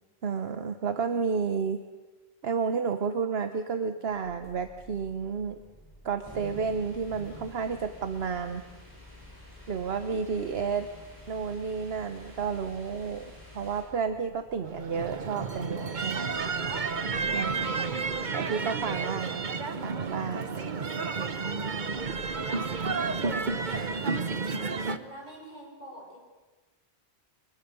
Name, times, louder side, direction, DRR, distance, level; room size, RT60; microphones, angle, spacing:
voice 1, 0.2-1.8 2.4-5.6 6.0-8.7 9.7-10.9 11.3-13.3 13.5-16.3 17.3-17.8 18.3-19.5 19.8-21.1, right 5 dB, 65° right, 8 dB, 1.2 m, -31 dB
sound 1, 4.1-23.9, right 1 dB, 20° left, 7.7 m, -55 dB
sound 2, 6.2-13.8, left 1 dB, 20° right, 8.0 m, -49 dB
sound 3, 14.6-25.0, right 4 dB, 45° right, 1.1 m, -31 dB
voice 2, 24.5-26.2, right 1 dB, 40° left, -3 dB, 8.3 m, -46 dB
25.0 x 20.5 x 7.0 m, 1.2 s
omnidirectional pair, 1.1 m